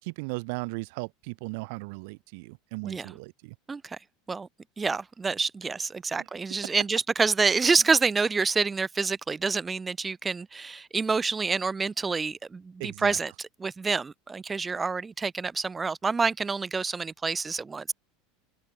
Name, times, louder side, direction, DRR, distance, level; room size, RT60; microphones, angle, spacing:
voice 1, 0.0-3.5 12.8-13.2, right 29 dB, 70° right, 5.4 m, -37 dB
voice 2, 3.7-4.0 4.3-4.5 4.8-17.9, right 4 dB, 20° right, 5.9 m, -27 dB
open air
hypercardioid pair, 100°, 0 cm